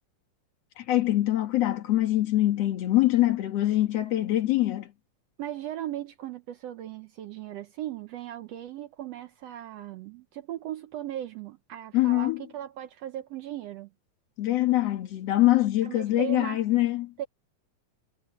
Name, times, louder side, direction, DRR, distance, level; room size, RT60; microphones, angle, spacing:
voice 1, 0.8-4.9 11.9-12.5 14.4-17.1, left 15 dB, 60° left, 2.1 m, -24 dB
voice 2, 5.4-13.9 15.8-16.6 17.2-17.3, right 12 dB, 75° right, 1.6 m, -37 dB
omnidirectional pair, 3.5 m